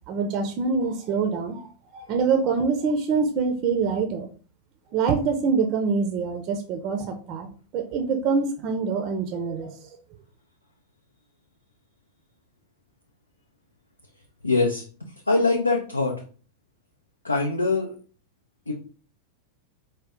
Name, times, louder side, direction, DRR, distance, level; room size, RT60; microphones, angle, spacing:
voice 1, 0.1-4.3 4.9-7.5 7.7-10.0, right 5 dB, 40° right, 5 dB, 0.6 m, -25 dB
voice 2, 14.4-14.8 15.3-16.1 17.2-17.9 18.7-18.8, left 3 dB, 80° left, 1 dB, 0.6 m, -22 dB
4.9 x 2.3 x 3.6 m, 0.40 s
figure-of-eight pair, 90°, 0 cm